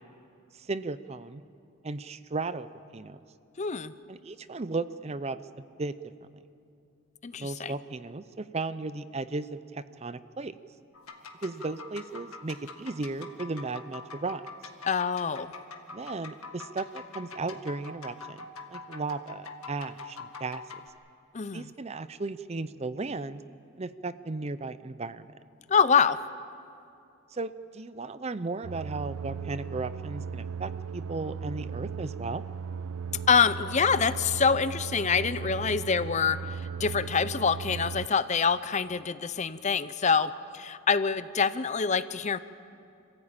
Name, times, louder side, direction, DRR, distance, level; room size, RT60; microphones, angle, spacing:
voice 1, 0.5-1.4 1.8-2.7 2.9-3.2 4.1-5.9 7.4-10.6 11.4-14.5 15.9-20.6 21.5-23.4 23.8-25.3 27.3-32.4, right 3 dB, 30° right, 14 dB, 0.5 m, -35 dB
voice 2, 3.6-3.9 7.2-7.7 14.9-15.5 21.3-21.7 25.7-26.2 33.3-42.4, left 6 dB, 30° left, 14 dB, 0.5 m, -26 dB
sound 1, 10.9-20.9, left 4 dB, 80° left, 1.8 m, -45 dB
sound 2, 28.6-38.1, right 6 dB, 85° right, 0.4 m, -37 dB
27.5 x 15.0 x 8.8 m, 2.5 s
head